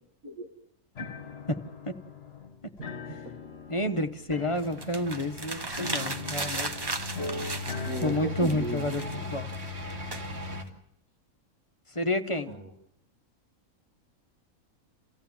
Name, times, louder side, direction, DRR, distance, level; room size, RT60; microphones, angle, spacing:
sound 1, 0.9-9.3, left 4 dB, 50° left, 1.5 m, -41 dB
voice 1, 2.8-3.3 7.9-8.8 12.5-12.7, right 1 dB, 75° right, 3 dB, 2.3 m, -37 dB
voice 2, 3.7-6.7 8.0-9.0 9.3-9.5 11.9-12.5, left 1 dB, 25° left, 6 dB, 1.1 m, -29 dB
sound 2, 4.3-10.6, left 2 dB, 45° right, 2.8 m, -38 dB
sound 3, 4.6-8.2 8.4-10.7, right 2 dB, 20° right, 0.7 m, -36 dB
29.5 x 15.5 x 7.2 m, 0.82 s
omnidirectional pair, 1.5 m